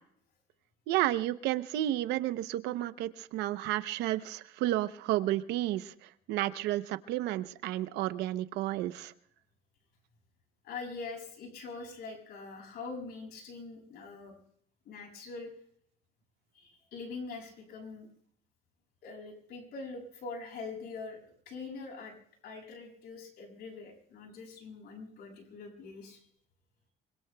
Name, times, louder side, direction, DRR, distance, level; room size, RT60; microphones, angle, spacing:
voice 1, 0.9-5.9 6.3-9.1, right 14 dB, 90° right, 14 dB, 0.8 m, -31 dB
voice 2, 10.6-14.3 14.9-15.5 16.5-18.1 19.0-21.2 21.5-22.1 22.4-26.2, left 4 dB, 70° left, 2 dB, 7.1 m, -43 dB
25.0 x 25.0 x 2.3 m, 0.67 s
cardioid pair, 110°, 17 cm